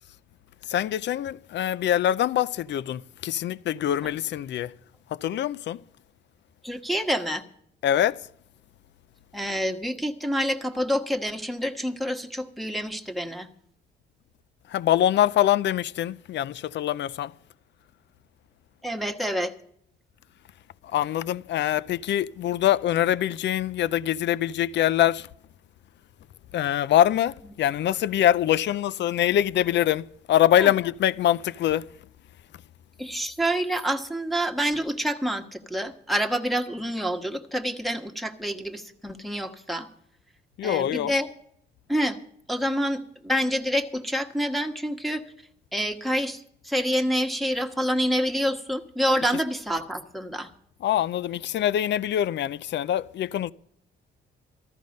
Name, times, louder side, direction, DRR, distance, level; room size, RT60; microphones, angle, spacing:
voice 1, 0.6-4.7 5.1-5.8 7.8-8.3 14.7-17.3 20.8-25.3 26.5-31.9 40.6-41.1 50.8-53.5, left 11 dB, 65° left, 0.5 m, -24 dB
voice 2, 6.6-7.4 9.3-13.5 18.8-19.5 30.6-30.7 33.0-39.9 40.6-41.3 41.9-42.2 42.5-45.2 45.7-50.5, equal, ahead, 1.4 m, -27 dB
14.0 x 12.5 x 5.3 m
cardioid pair, 90°, 20 cm